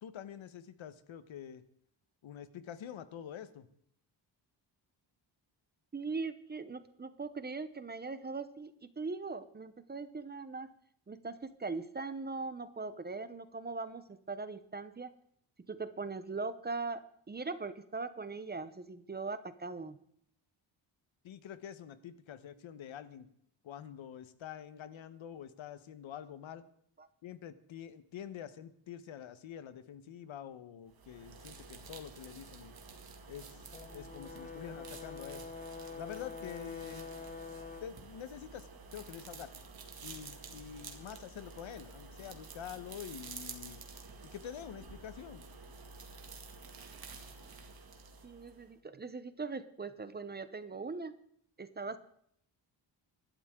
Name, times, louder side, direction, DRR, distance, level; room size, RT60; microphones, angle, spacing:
voice 1, 0.0-1.6 2.2-3.7 21.2-23.3 23.6-26.6 27.2-32.7 33.3-35.4 36.0-37.1 37.8-39.5 40.0-43.8 44.2-45.5, left 9 dB, 85° left, 12 dB, 1.2 m, -47 dB
voice 2, 5.9-10.7 11.1-15.1 15.7-20.0 27.0-27.1 48.2-51.1 51.6-52.0, right 4 dB, 20° right, 12 dB, 0.7 m, -40 dB
sound 1, 30.9-48.7, right 4 dB, 50° right, 2.1 m, -50 dB
Brass instrument, 33.7-38.0, left 4 dB, 20° left, 0.9 m, -46 dB
24.0 x 12.0 x 3.7 m, 0.67 s
wide cardioid pair, 180°, 46 cm